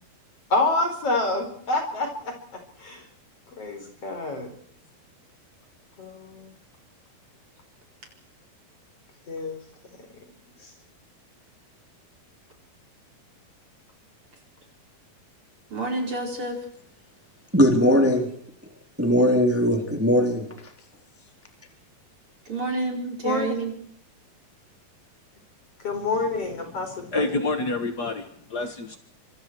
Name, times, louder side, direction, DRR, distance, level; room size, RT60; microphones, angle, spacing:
voice 1, 0.5-2.4 2.8-3.1 3.6-4.5 6.0-6.5 9.3-9.6 10.2-10.3 10.6-10.7 23.2-23.5 25.8-27.3, left 2 dB, 40° left, 4 dB, 5.3 m, -27 dB
voice 2, 15.7-16.6 22.5-23.7, right 2 dB, 35° right, 1 dB, 5.5 m, -29 dB
voice 3, 17.5-18.3 19.0-20.4, equal, 5° right, 3 dB, 3.1 m, -19 dB
voice 4, 26.8-29.0, left 2 dB, 70° left, 7 dB, 0.9 m, -28 dB
26.0 x 26.0 x 4.7 m, 0.66 s
omnidirectional pair, 4.4 m